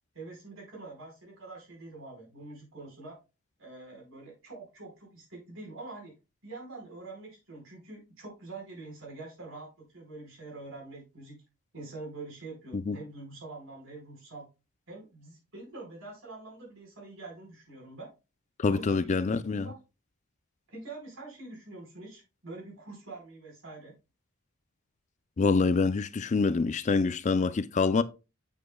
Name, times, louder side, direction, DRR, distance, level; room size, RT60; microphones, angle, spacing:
voice 1, 0.1-3.2 3.6-6.1 6.4-11.4 11.7-14.4 14.9-18.1 18.6-19.8 20.7-23.9, right 2 dB, 65° right, 4.5 m, -45 dB
voice 2, 18.6-19.7 25.4-28.0, left 4 dB, 35° left, 0.4 m, -26 dB
8.3 x 7.2 x 2.2 m
head